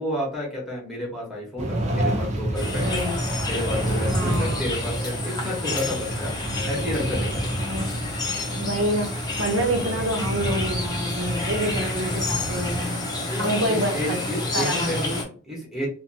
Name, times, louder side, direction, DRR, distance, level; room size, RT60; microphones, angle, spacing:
voice 1, 0.0-3.0 3.5-6.3 6.7-7.6 13.2-15.2 15.4-15.9, left 1 dB, ahead, -4 dB, 1.0 m, -30 dB
sound 1, 1.6-12.8, right 1 dB, 35° right, 0.5 m, -29 dB
sound 2, 2.5-15.2, left 2 dB, 20° left, 0.5 m, -30 dB
voice 2, 2.8-3.2 4.1-4.6 7.6-7.9 8.6-13.1 13.4-14.2 14.5-15.3, equal, 85° right, 2 dB, 0.8 m, -27 dB
2.7 x 2.2 x 2.7 m, 0.42 s
head